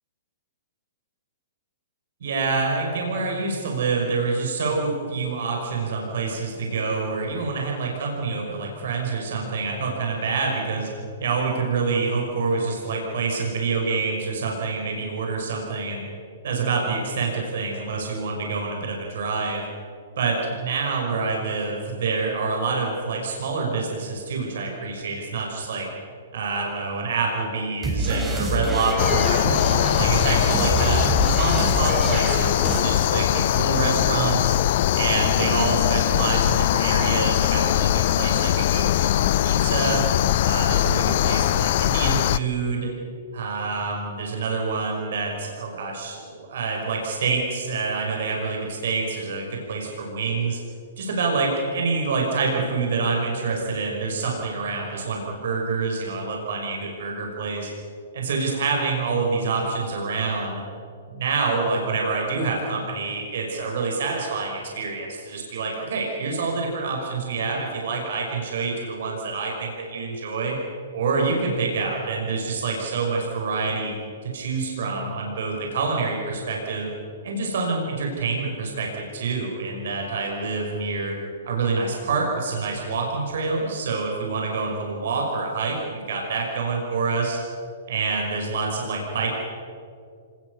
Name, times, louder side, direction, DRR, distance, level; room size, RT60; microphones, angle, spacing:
voice 1, 2.2-10.9 11.2-16.0 16.4-19.6 20.2-25.9 26.3-31.0 31.3-34.6 34.9-39.1 39.4-40.1 40.4-42.9 43.3-50.6 51.0-57.7 58.1-60.6 61.1-70.6 70.9-73.9 74.2-76.9 77.2-81.1 81.4-87.4 87.9-89.3, right 4 dB, 65° right, 0 dB, 5.5 m, -27 dB
sound 1, 27.8-32.8, right 2 dB, 15° right, 4.8 m, -26 dB
sound 2, 29.0-42.4, left 13 dB, 50° left, 0.6 m, -21 dB
26.5 x 19.5 x 6.8 m, 2.4 s
hypercardioid pair, 120°, 0 cm